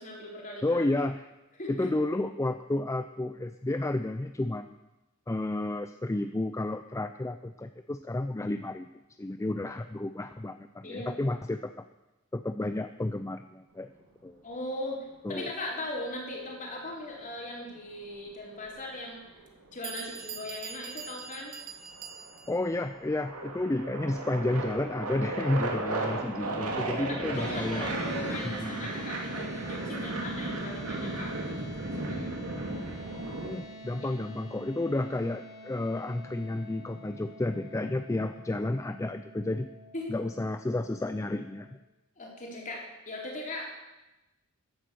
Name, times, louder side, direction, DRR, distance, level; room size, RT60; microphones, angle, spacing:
voice 1, 0.0-0.8 1.6-1.9 10.8-11.2 14.4-15.0 15.3-19.2 19.7-21.5 26.6-32.3 34.0-34.1 39.9-40.1 42.2-43.8, left 2 dB, 35° left, -2 dB, 4.2 m, -39 dB
voice 2, 0.6-1.3 1.7-4.8 5.3-8.9 9.2-11.9 12.3-13.9 14.2-14.4 15.2-15.5 22.5-27.9 28.4-28.9 33.4-39.7 40.1-41.8, left 2 dB, 15° left, 9 dB, 0.4 m, -31 dB
sound 1, 15.7-16.8 18.6-19.9 20.9-21.3 21.6-33.6, right 2 dB, 85° right, 2.5 m, -35 dB
Bell, 18.7-18.8 19.5-19.6 19.8-22.6, right 7 dB, 40° right, 1.6 m, -43 dB
sound 2, 27.3-41.7, right 2 dB, 55° left, 4.0 m, -47 dB
15.0 x 10.5 x 6.9 m, 1.0 s
head